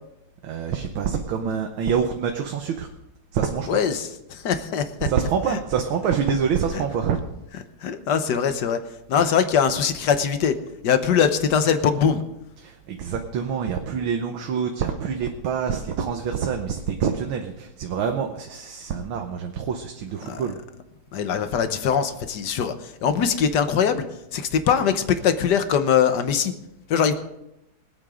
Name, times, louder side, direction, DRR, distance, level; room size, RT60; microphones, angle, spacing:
voice 1, 0.4-2.9 3.3-3.8 5.0-7.2 12.6-20.6, right 7 dB, 75° right, 4 dB, 1.8 m, -26 dB
voice 2, 3.7-5.1 5.5-5.6 6.7-6.8 7.8-8.8 9.1-10.5 10.8-12.2 20.3-20.5 21.1-22.7 23.0-24.0 24.3-26.5 26.9-27.1, left 7 dB, 60° left, 9 dB, 1.5 m, -22 dB
23.5 x 9.0 x 3.7 m, 0.88 s
omnidirectional pair, 2.3 m